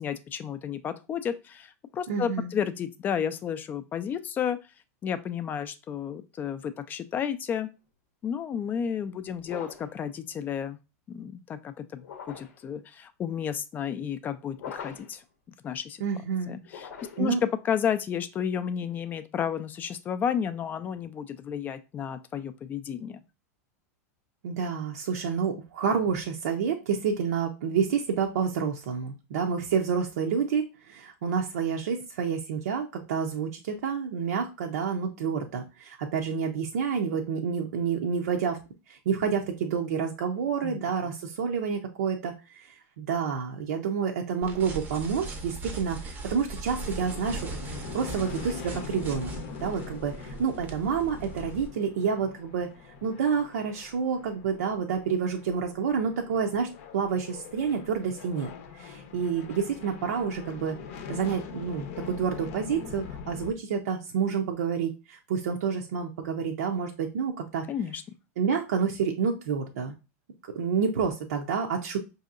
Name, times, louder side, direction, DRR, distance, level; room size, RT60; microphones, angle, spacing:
voice 1, 0.0-4.6 5.0-7.7 8.2-10.8 11.1-12.0 12.3-15.2 15.6-16.0 16.5-16.9 17.2-17.3 17.6-23.2 40.6-40.8 67.7-68.0, left 8 dB, 20° left, 11 dB, 0.3 m, -32 dB
voice 2, 2.1-2.5 16.0-16.6 17.2-17.4 24.4-38.6 38.9-49.3 49.6-52.7 53.0-60.8 61.1-67.7 68.4-69.9 70.5-72.0, right 6 dB, 80° right, 1 dB, 0.6 m, -29 dB
sound 1, 9.4-10.0 12.0-12.6 14.5-15.2 16.6-17.4, left 7 dB, 85° left, 0.8 m, -41 dB
sound 2, 44.4-51.7, right 3 dB, 20° right, 0.6 m, -39 dB
sound 3, 46.8-63.5, left 6 dB, 60° left, 0.6 m, -43 dB
5.1 x 2.7 x 2.4 m, 0.28 s
supercardioid pair, 145°, 9 cm